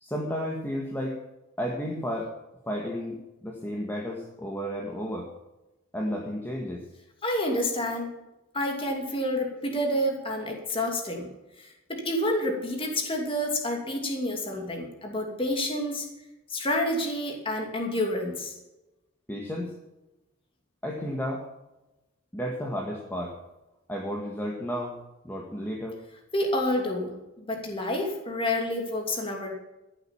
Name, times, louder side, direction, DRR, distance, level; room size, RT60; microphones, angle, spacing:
voice 1, 0.0-1.2 1.6-2.3 2.7-5.3 5.9-6.8 19.3-19.7 20.8-21.5 22.3-23.3 23.9-25.0 25.2-26.0, equal, 10° left, -1 dB, 1.8 m, -32 dB
voice 2, 7.2-8.1 8.5-11.3 11.6-16.1 16.5-18.5 26.3-29.6, left 1 dB, 25° left, 1 dB, 2.8 m, -29 dB
14.5 x 8.1 x 7.1 m, 1.0 s
head